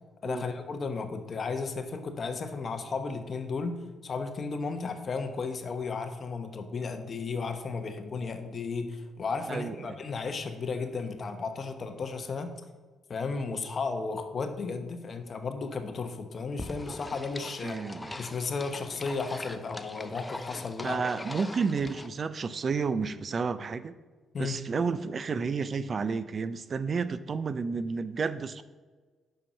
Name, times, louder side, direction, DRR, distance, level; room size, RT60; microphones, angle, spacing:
voice 1, 0.2-3.8 4.0-12.5 13.1-17.8 18.2-21.0 24.3-24.6, left 4 dB, 45° left, 7 dB, 0.8 m, -34 dB
voice 2, 9.5-10.0 17.6-18.2 20.8-23.9 24.4-28.6, right 5 dB, 40° right, 13 dB, 0.3 m, -31 dB
sound 1, 16.6-22.1, left 2 dB, 15° left, 0.5 m, -41 dB
5.6 x 5.2 x 5.6 m, 1.4 s
cardioid pair, 90°, 0 cm